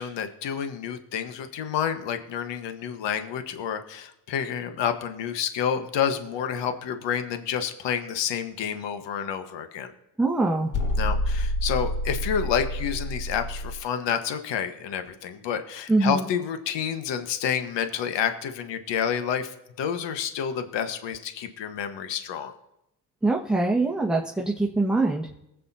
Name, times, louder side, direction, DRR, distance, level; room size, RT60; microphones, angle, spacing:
voice 1, 0.0-9.9 11.0-22.5, left 8 dB, 60° left, 8 dB, 1.4 m, -29 dB
voice 2, 10.2-10.7 15.9-16.3 23.2-25.3, right 2 dB, ahead, -2 dB, 1.5 m, -23 dB
sound 1, 10.7-13.8, left 1 dB, 40° left, 1.6 m, -28 dB
23.0 x 8.3 x 2.8 m, 0.86 s
hypercardioid pair, 55°, 49 cm